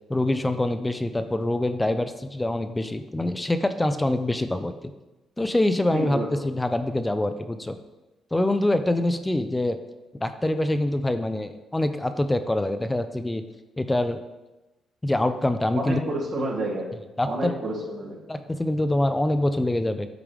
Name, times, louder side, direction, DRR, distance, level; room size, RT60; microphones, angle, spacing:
voice 1, 0.1-4.8 5.4-7.8 8.3-9.8 10.2-13.4 13.8-14.2 15.0-16.0 17.2-17.5 18.3-20.1, left 1 dB, 10° left, 9 dB, 0.4 m, -25 dB
voice 2, 5.9-6.4 15.7-16.9 17.2-18.2, right 1 dB, 75° right, -5 dB, 2.0 m, -29 dB
8.7 x 4.8 x 3.3 m, 1.1 s
cardioid pair, 90°, 0 cm